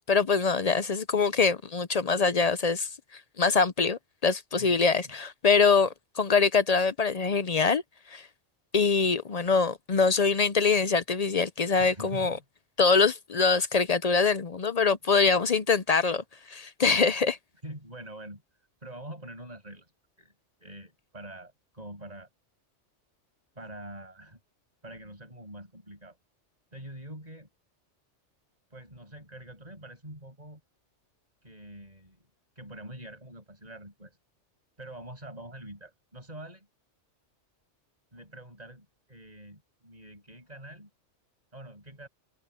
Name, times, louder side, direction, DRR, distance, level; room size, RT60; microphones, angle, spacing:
voice 1, 0.1-2.9 3.4-7.8 8.1-8.3 8.7-12.4 12.8-17.4, left 4 dB, 45° left, 0.5 m, -24 dB
voice 2, 11.8-12.4 17.6-18.4 18.8-19.9 20.2-20.3 20.6-22.3 23.6-24.4 24.8-26.2 26.7-27.5 28.7-30.6 31.4-32.3 32.6-34.2 34.8-36.7 38.1-40.9 41.5-42.1, right 1 dB, 35° right, 7.2 m, -45 dB
omnidirectional pair, 1.2 m